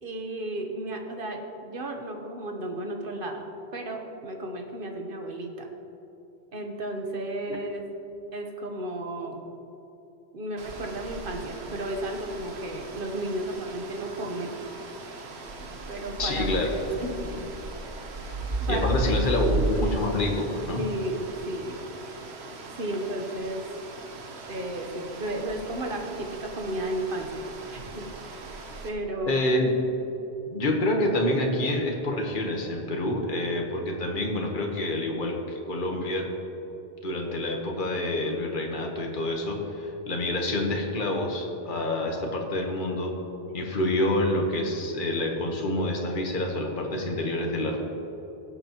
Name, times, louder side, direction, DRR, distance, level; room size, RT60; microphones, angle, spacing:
voice 1, 0.0-3.4 3.7-5.7 6.5-7.9 8.3-9.4 10.3-14.6 15.6-16.5 16.7-17.4 18.1-18.9 19.2-19.3 20.8-21.8 22.8-23.6 24.5-28.5 28.8-29.4 43.5-43.6 47.4-47.5, right 1 dB, 60° right, 3 dB, 1.3 m, -34 dB
sound 1, 10.6-28.9, right 1 dB, 85° right, 1.3 m, -35 dB
voice 2, 16.2-16.7 18.7-20.8 29.3-29.7 30.5-36.3 37.0-43.2 43.5-47.8, left 1 dB, 55° left, 1 dB, 1.4 m, -27 dB
18.0 x 7.9 x 3.0 m, 3.0 s
omnidirectional pair, 1.1 m